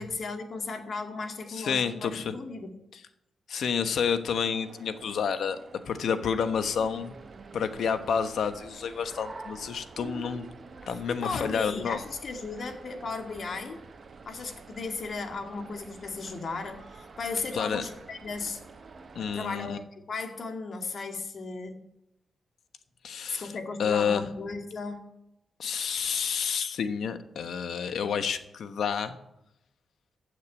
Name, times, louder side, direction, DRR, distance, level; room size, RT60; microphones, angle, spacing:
voice 1, 0.0-2.7 11.1-13.8 14.2-18.6 19.3-21.8 23.3-25.0, left 4 dB, 55° left, 4 dB, 2.2 m, -36 dB
voice 2, 1.5-2.3 2.9-3.0 3.5-5.6 5.9-7.1 7.5-10.5 10.9-12.0 17.5-17.8 19.1-19.8 23.0-23.5 23.8-24.2 25.6-29.2, left 7 dB, 75° left, 9 dB, 1.2 m, -29 dB
sound 1, 4.3-19.6, right 5 dB, 65° right, 1.5 m, -53 dB
sound 2, 6.5-19.4, right 3 dB, 35° right, 1.3 m, -49 dB
15.0 x 6.6 x 9.4 m, 0.85 s
cardioid pair, 105°, 0 cm